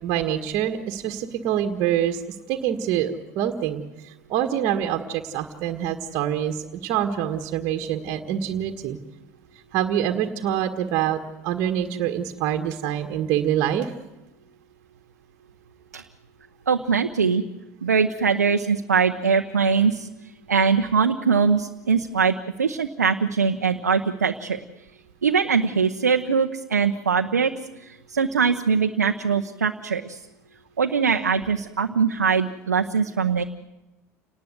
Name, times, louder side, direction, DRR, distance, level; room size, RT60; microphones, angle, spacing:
voice 1, 0.0-9.0 9.7-13.9, right 10 dB, 55° right, 4 dB, 1.6 m, -26 dB
voice 2, 16.7-17.4 17.8-20.1 20.5-24.6 25.2-27.5 27.8-30.2 30.8-33.4, right 5 dB, 90° right, 5 dB, 0.8 m, -22 dB
29.0 x 19.0 x 8.0 m, 1.1 s
hypercardioid pair, 70°, 9 cm